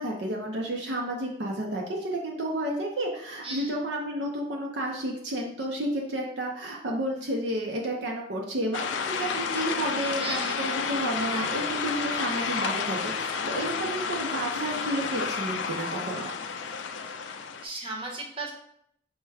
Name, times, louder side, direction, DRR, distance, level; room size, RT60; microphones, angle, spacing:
voice 1, 0.0-16.3, right 1 dB, 65° right, 0 dB, 0.6 m, -31 dB
voice 2, 3.4-3.8 10.2-10.6 17.3-17.4 17.6-18.5, right 2 dB, 30° right, -1 dB, 0.8 m, -36 dB
sound 1, 8.7-17.7, left 5 dB, 75° left, 0.4 m, -31 dB
4.6 x 2.2 x 4.7 m, 0.70 s
head